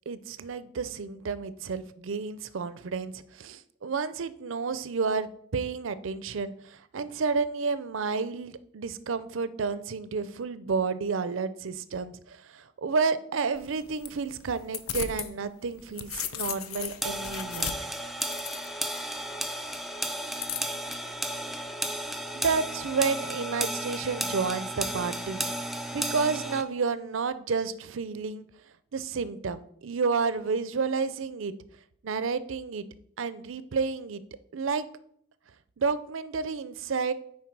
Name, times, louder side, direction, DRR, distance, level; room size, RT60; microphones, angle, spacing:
voice 1, 0.1-17.9 22.3-28.5 28.9-31.5 32.0-32.9 33.2-34.2 34.5-34.8 35.8-37.1, right 5 dB, 70° right, 14 dB, 0.5 m, -31 dB
sound 1, 13.5-15.3 15.7-19.0 20.4-21.0, left 9 dB, 90° left, 0.6 m, -37 dB
sound 2, 17.0-26.6, right 1 dB, ahead, 0.4 m, -33 dB
9.4 x 4.5 x 4.7 m, 0.68 s
head